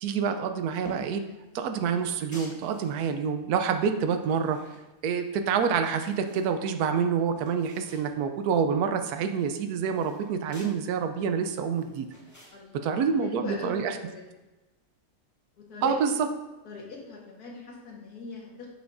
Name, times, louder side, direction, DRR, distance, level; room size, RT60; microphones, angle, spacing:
voice 1, 0.0-1.3 1.5-4.6 5.0-12.1 12.7-14.0 15.8-16.3, right 6 dB, 85° right, 8 dB, 1.1 m, -27 dB
sound 1, 0.8-1.2 1.7-3.2 3.6-5.1 5.5-6.5 6.9-7.0 7.2-8.1 8.4-8.5 8.8-10.7 11.2-12.5, equal, 15° left, 0.9 m, -48 dB
voice 2, 12.5-13.8 14.1-14.2 15.6-16.2 16.7-18.7, left 3 dB, 85° left, -2 dB, 1.8 m, -39 dB
6.9 x 5.8 x 2.5 m, 1.1 s
omnidirectional pair, 1.6 m